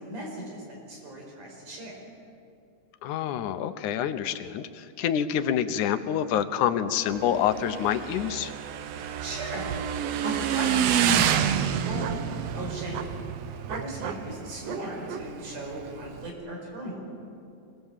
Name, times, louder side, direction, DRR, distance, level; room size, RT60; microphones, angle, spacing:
voice 1, 0.0-1.9 9.2-9.8 10.2-13.1 13.7-17.0, right 1 dB, 85° right, -1 dB, 6.6 m, -37 dB
voice 2, 3.0-8.5, left 9 dB, 80° left, 11 dB, 2.3 m, -27 dB
Motorcycle / Engine, 7.1-16.3, right 9 dB, 70° right, 1.8 m, -29 dB
25.5 x 18.5 x 7.3 m, 2.5 s
omnidirectional pair, 3.5 m